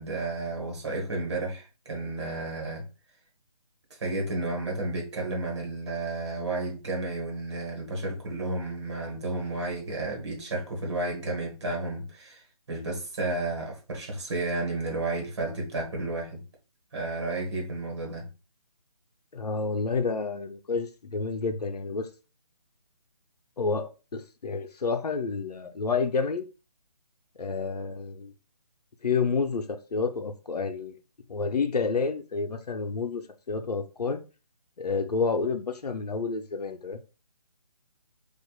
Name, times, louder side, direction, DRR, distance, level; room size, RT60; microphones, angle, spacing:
voice 1, 0.0-2.8 4.0-16.4 16.9-18.3, right 2 dB, 45° right, 1.3 m, -32 dB
voice 2, 19.3-22.1 23.6-26.5 27.4-28.3 29.0-30.9 31.3-33.2 33.5-34.2 34.8-37.0, left 4 dB, 80° left, 0.7 m, -29 dB
4.4 x 2.5 x 2.3 m
hypercardioid pair, 165°, 20 cm